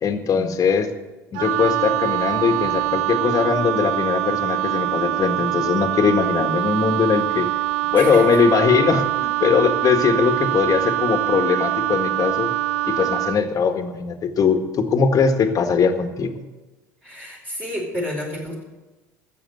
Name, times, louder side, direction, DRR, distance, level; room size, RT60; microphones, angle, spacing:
voice 1, 0.0-0.9 1.3-7.5 7.9-12.5 12.8-16.3, left 6 dB, 40° left, 6 dB, 1.7 m, -20 dB
Wind instrument woodwind instrument, 1.3-13.4, right 15 dB, 65° right, 0.4 m, -24 dB
voice 2, 7.9-8.4 17.0-18.6, left 1 dB, 15° right, -6 dB, 4.8 m, -30 dB
13.0 x 8.6 x 7.9 m, 1.1 s
hypercardioid pair, 70°, 10 cm